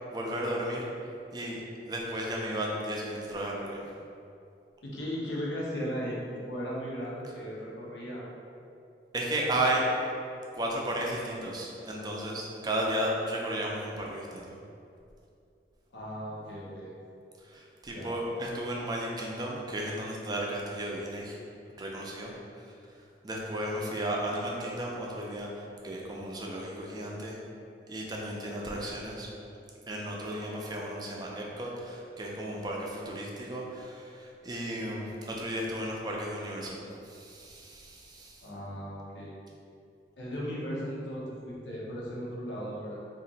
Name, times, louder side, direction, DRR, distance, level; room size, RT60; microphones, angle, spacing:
voice 1, 0.1-0.9 1.3-1.6 1.9-3.8 9.1-9.8 10.5-14.6 17.4-21.4 21.8-22.3 22.6-27.4 27.9-29.3 29.9-36.8 37.0-38.5, right 1 dB, 25° right, -2 dB, 0.4 m, -34 dB
voice 2, 4.8-6.2 6.5-8.3 15.9-16.9 17.9-18.2 23.7-23.9 38.4-39.4 40.2-43.0, equal, 90° left, -5 dB, 0.8 m, -37 dB
2.9 x 2.5 x 3.9 m, 2.5 s
head